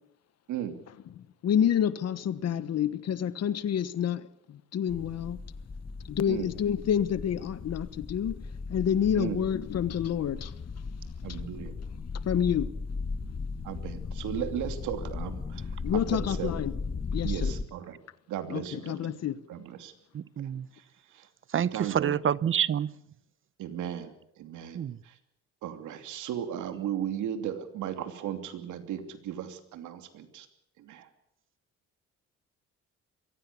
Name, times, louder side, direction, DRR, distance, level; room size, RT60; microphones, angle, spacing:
voice 1, 1.4-5.4 6.1-8.3 8.7-10.5 12.2-12.7 15.8-16.7 17.1-17.5 18.5-19.4, left 9 dB, 60° left, 1.2 m, -28 dB
sound 1, 4.9-17.6, left 4 dB, 30° left, 1.3 m, -37 dB
voice 2, 11.2-11.7 13.6-15.7 15.9-16.5 17.2-18.0 18.3-19.1 19.5-19.9 20.7-20.8 21.1-21.3 21.5-22.2 23.6-25.2 25.6-30.5 30.8-31.1, right 10 dB, 85° right, 2.9 m, -36 dB
voice 3, 20.1-20.7 21.5-22.9 24.7-25.0, right 9 dB, 45° right, 0.8 m, -27 dB
23.5 x 16.5 x 8.4 m
cardioid pair, 105°, 29 cm